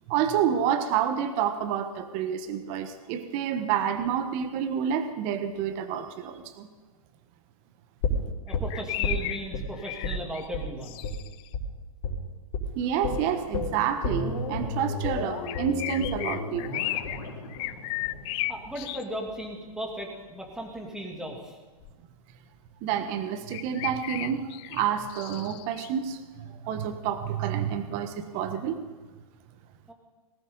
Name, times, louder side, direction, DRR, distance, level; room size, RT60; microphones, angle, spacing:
voice 1, 0.1-6.7 12.7-16.9 22.8-28.8, right 8 dB, 35° right, 9 dB, 1.3 m, -29 dB
sound 1, 8.0-9.6 10.0-10.2 10.5-10.7 11.0-11.2 11.5-11.7 12.0-12.2 12.5-12.7 13.0-19.0 19.3-19.4, left 2 dB, 50° left, 4.1 m, -32 dB
sound 2, 8.5-11.5 15.4-17.2 17.5-19.0 21.8-21.9 23.5-25.9 27.4-27.5, left 17 dB, 30° left, 0.5 m, -34 dB
voice 2, 8.5-11.1 18.5-21.6 29.9-30.0, equal, 5° right, 0 dB, 2.8 m, -37 dB
19.5 x 17.0 x 4.0 m, 1.3 s
hypercardioid pair, 125°, 19 cm